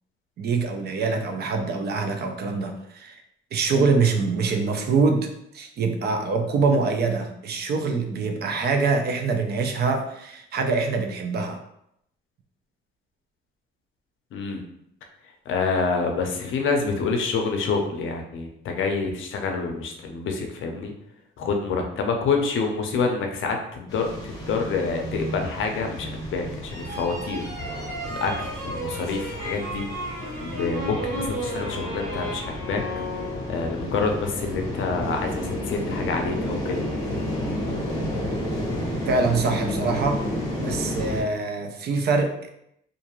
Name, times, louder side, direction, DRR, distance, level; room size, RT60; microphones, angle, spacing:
voice 1, 0.4-3.2 3.5-5.3 5.5-11.6 39.1-40.2 40.6-42.3, right 4 dB, 50° right, 5 dB, 0.4 m, -24 dB
voice 2, 14.3-14.6 15.5-20.9 21.4-27.5 28.1-29.9 30.4-33.2 33.5-36.8, left 4 dB, 70° left, 3 dB, 0.5 m, -27 dB
sound 1, 23.9-41.2, left 1 dB, 15° left, 0.7 m, -31 dB
sound 2, 26.6-33.8, equal, 30° right, 1.1 m, -34 dB
2.5 x 2.3 x 2.9 m, 0.76 s
cardioid pair, 170°, 21 cm